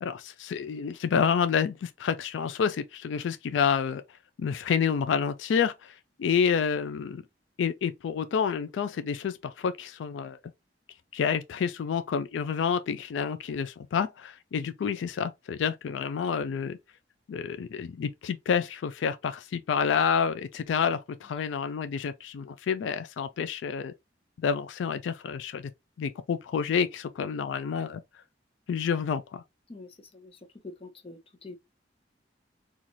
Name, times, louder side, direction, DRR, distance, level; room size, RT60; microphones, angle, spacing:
voice 1, 0.0-4.0 4.4-7.2 7.6-10.4 11.1-16.8 17.3-23.9 24.4-25.7 26.0-28.0 28.7-29.4, left 7 dB, 85° left, 0.3 m, -29 dB
voice 2, 29.7-31.6, left 3 dB, 30° left, 0.7 m, -46 dB
4.0 x 2.4 x 2.9 m
head